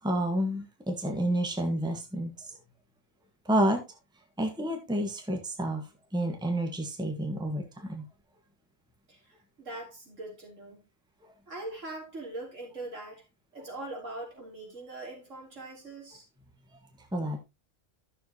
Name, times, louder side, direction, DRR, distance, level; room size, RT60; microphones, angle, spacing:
voice 1, 0.0-2.5 3.4-3.8 4.4-8.1 11.2-11.3 17.1-17.4, right 1 dB, 5° right, 1.5 m, -30 dB
voice 2, 9.1-10.9 11.5-13.2 13.5-16.2, right 2 dB, 65° right, 3.9 m, -42 dB
12.5 x 6.8 x 2.9 m
omnidirectional pair, 1.4 m